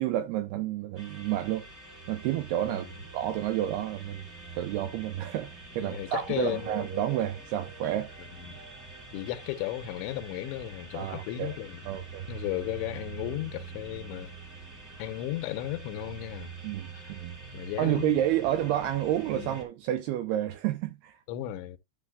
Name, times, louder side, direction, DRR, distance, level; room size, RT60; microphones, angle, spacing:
voice 1, 0.0-1.7 2.1-2.9 3.1-4.3 4.6-8.1 10.9-11.6 11.9-12.3 16.6-17.4 17.8-21.1, right 12 dB, 80° right, 2.3 m, -30 dB
sound 1, 1.0-19.6, right 4 dB, 25° right, 1.7 m, -45 dB
voice 2, 2.7-3.0 5.8-6.8 8.2-8.7 9.1-12.0 12.3-14.3 15.0-16.6 16.9-17.1 17.5-18.3 19.3-19.6 21.3-21.8, left 14 dB, 85° left, 3.1 m, -35 dB
sound 2, 4.3-19.4, left 1 dB, 55° right, 5.7 m, -53 dB
13.0 x 6.9 x 2.3 m
omnidirectional pair, 5.2 m